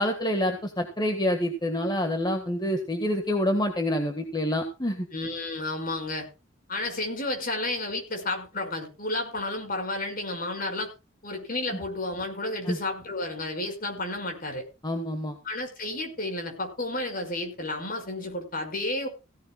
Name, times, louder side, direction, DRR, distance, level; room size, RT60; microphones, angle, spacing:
voice 1, 0.0-5.1 12.6-12.8 14.8-15.4, left 1 dB, 20° left, 5 dB, 1.7 m, -27 dB
voice 2, 5.1-6.3 6.7-10.9 11.2-14.6 15.4-19.1, left 2 dB, 45° left, 5 dB, 5.4 m, -31 dB
16.5 x 15.0 x 2.3 m, 0.30 s
head